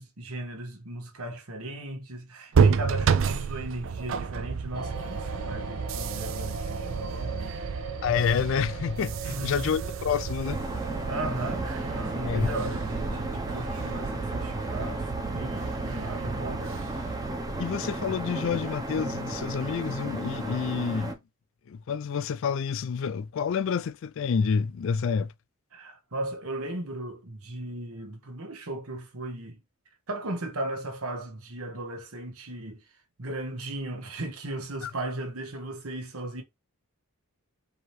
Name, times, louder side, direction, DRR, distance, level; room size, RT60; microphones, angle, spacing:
voice 1, 0.0-7.6 9.2-9.6 11.1-16.8 25.7-29.6 30.1-32.8 33.2-36.4, right 1 dB, 75° right, 1.3 m, -36 dB
sound 1, 2.5-18.2, right 6 dB, 60° right, 0.4 m, -31 dB
sound 2, 4.7-16.6, right 3 dB, 90° right, 0.8 m, -41 dB
voice 2, 8.0-10.6 12.3-12.5 17.6-21.2 21.7-25.3 34.8-34.9, left 6 dB, 60° left, 0.3 m, -28 dB
sound 3, 10.4-21.1, right 1 dB, 15° right, 0.7 m, -34 dB
4.6 x 2.9 x 3.2 m
head